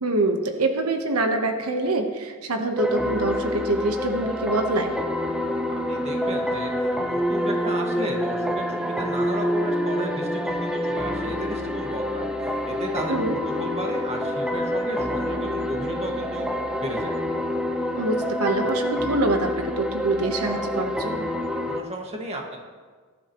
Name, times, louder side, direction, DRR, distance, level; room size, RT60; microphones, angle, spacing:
voice 1, 0.0-4.9 13.1-13.4 18.0-21.3, right 2 dB, 85° right, 5 dB, 1.1 m, -25 dB
sound 1, 2.8-21.8, left 1 dB, 5° right, 0.8 m, -27 dB
voice 2, 5.7-12.3 12.7-16.5 16.8-17.2 21.7-22.6, right 1 dB, 30° right, 1 dB, 1.8 m, -34 dB
19.0 x 12.0 x 3.1 m, 1.5 s
head